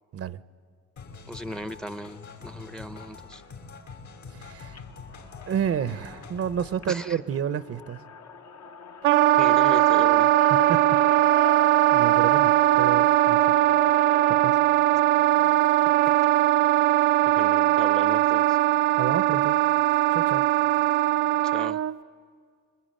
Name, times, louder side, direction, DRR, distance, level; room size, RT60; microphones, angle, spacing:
sound 1, 1.0-6.8, left 5 dB, 75° left, 3.8 m, -44 dB
voice 1, 1.3-3.4 6.9-7.2 9.4-10.3 17.3-18.6 21.4-21.8, equal, ahead, 12 dB, 0.8 m, -37 dB
voice 2, 4.3-4.8 5.5-8.0 10.7-10.8 11.9-13.5 14.3-14.6 19.0-19.6 20.1-20.5, right 8 dB, 50° right, 14 dB, 0.8 m, -30 dB
sound 2, 4.6-16.0, left 7 dB, 55° left, 1.2 m, -40 dB
Wind instrument woodwind instrument, 9.0-21.9, right 14 dB, 80° right, 0.8 m, -20 dB
25.0 x 22.0 x 8.9 m, 2.1 s
cardioid pair, 90°, 30 cm